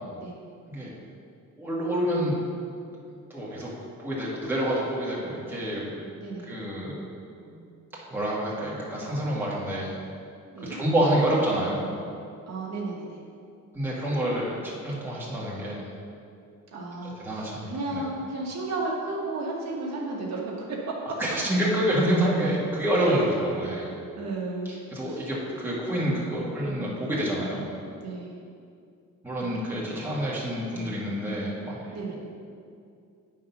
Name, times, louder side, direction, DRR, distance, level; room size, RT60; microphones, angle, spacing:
voice 1, 1.6-2.4 3.3-3.7 4.0-6.0 6.4-7.0 7.4-7.6 8.1-9.9 10.7-11.8 13.7-15.9 17.0-18.0 21.2-23.9 24.7-27.6 29.2-31.9, right 1 dB, 5° right, -7 dB, 1.7 m, -27 dB
voice 2, 6.2-6.5 10.5-10.8 12.5-13.2 16.7-21.1 23.1-23.2 24.2-24.7 25.1-25.2 28.0-28.4 31.9-32.2, right 2 dB, 55° right, -3 dB, 1.3 m, -33 dB
9.1 x 3.8 x 5.8 m, 2.4 s
cardioid pair, 130°, 31 cm